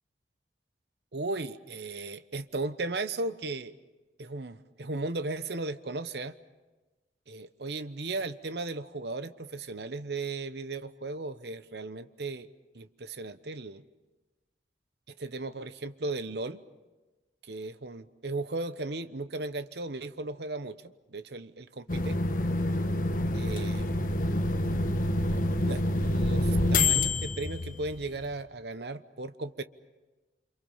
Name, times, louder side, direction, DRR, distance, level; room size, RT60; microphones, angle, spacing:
voice 1, 1.1-3.7 4.2-6.3 7.3-12.5 12.7-13.8 15.2-16.6 17.4-20.8 21.1-22.2 23.3-23.9 25.6-29.6, right 2 dB, 65° right, 12 dB, 1.0 m, -36 dB
sound 1, 21.9-28.3, left 2 dB, 50° left, 1.3 m, -27 dB
29.0 x 26.5 x 5.7 m, 1.2 s
head